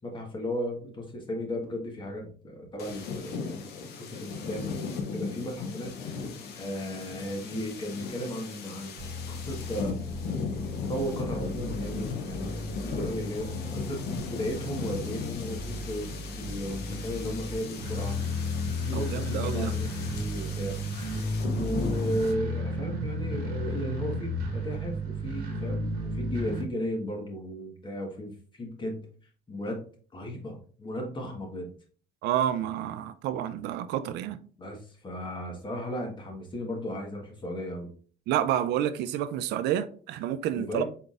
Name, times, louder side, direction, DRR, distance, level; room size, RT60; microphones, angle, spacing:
voice 1, 0.0-6.2 6.5-8.9 9.3-10.0 10.9-14.0 14.3-18.2 18.8-20.8 21.5-29.1 29.5-29.9 30.1-31.7 34.6-37.9 40.5-40.8, equal, 30° left, 1.5 m, -35 dB
sound 1, 2.8-22.3, left 4 dB, 75° left, 0.9 m, -37 dB
sound 2, 9.0-26.6, left 1 dB, 60° right, 1.2 m, -34 dB
voice 2, 18.9-19.7 32.2-34.4 38.3-40.8, right 11 dB, 80° right, 0.5 m, -29 dB
4.5 x 3.9 x 2.5 m
cardioid pair, 110°, 17 cm